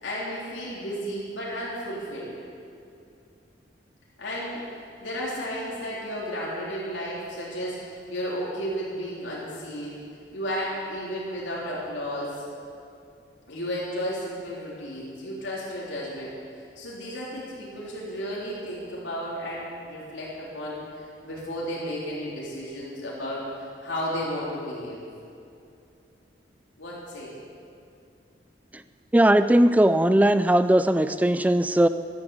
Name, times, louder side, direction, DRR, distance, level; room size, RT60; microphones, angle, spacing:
voice 1, 0.0-2.4 4.2-4.6 5.0-10.0 10.3-12.4 13.5-16.4 16.8-25.0 26.8-27.3, equal, 85° left, -6 dB, 3.7 m, -33 dB
voice 2, 29.1-31.9, right 1 dB, 10° right, 11 dB, 0.3 m, -19 dB
14.0 x 13.0 x 7.2 m, 2.5 s
head